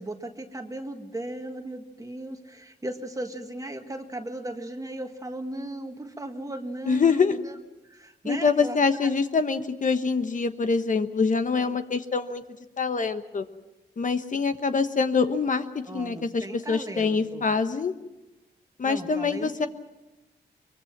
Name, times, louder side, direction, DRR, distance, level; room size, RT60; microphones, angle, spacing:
voice 1, 0.0-7.5 7.8-8.8 9.0-9.1 15.9-17.4 18.8-19.5, right 1 dB, 20° right, 5 dB, 1.7 m, -36 dB
voice 2, 6.9-7.4 8.2-12.4 12.8-13.4 14.0-17.9 18.8-19.7, left 5 dB, 45° left, 9 dB, 1.2 m, -25 dB
23.5 x 22.5 x 6.0 m, 1.0 s
cardioid pair, 85°, 18 cm